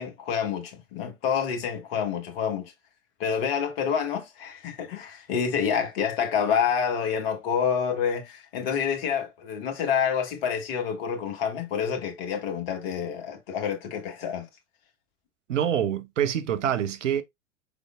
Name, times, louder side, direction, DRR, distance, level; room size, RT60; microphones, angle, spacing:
voice 1, 0.0-2.7 3.2-14.5, left 7 dB, 50° left, 1.4 m, -28 dB
voice 2, 15.5-17.2, right 9 dB, 70° right, 0.7 m, -26 dB
5.2 x 3.5 x 2.4 m
figure-of-eight pair, 85°, 39 cm